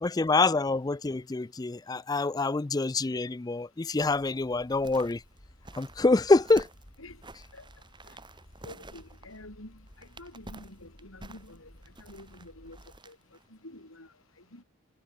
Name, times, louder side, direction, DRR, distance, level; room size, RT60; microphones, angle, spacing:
voice 1, 0.0-5.2 5.8-6.7, left 3 dB, 20° left, 0.4 m, -26 dB
sound 1, 4.0-13.0, equal, 35° left, 4.8 m, -56 dB
sound 2, 4.6-13.5 13.8-13.9, right 2 dB, 20° right, 3.8 m, -50 dB
voice 2, 8.6-11.7 12.0-12.8 13.1-13.2 13.6-14.1 14.5-14.6, left 1 dB, 80° left, 6.2 m, -48 dB
head